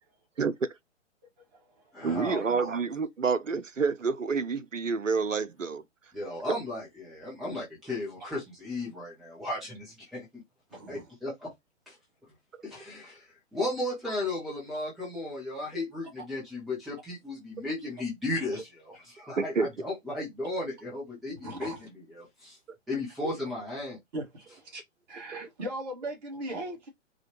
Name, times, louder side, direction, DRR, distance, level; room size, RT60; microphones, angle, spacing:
voice 1, 0.4-0.7 2.0-5.8 19.4-19.7 25.3-25.5, right 5 dB, 85° right, 0.6 m, -28 dB
voice 2, 1.9-2.8 6.1-10.3 10.9-11.5 11.9-12.0 12.6-13.2 13.5-21.7 22.1-22.6 22.9-24.0, left 2 dB, ahead, 0.5 m, -35 dB
voice 3, 10.7-11.1 21.4-21.8 23.2-23.4 24.1-24.8 25.1-26.9, right 1 dB, 35° right, 1.7 m, -38 dB
4.8 x 2.3 x 2.9 m
figure-of-eight pair, 125°, 37 cm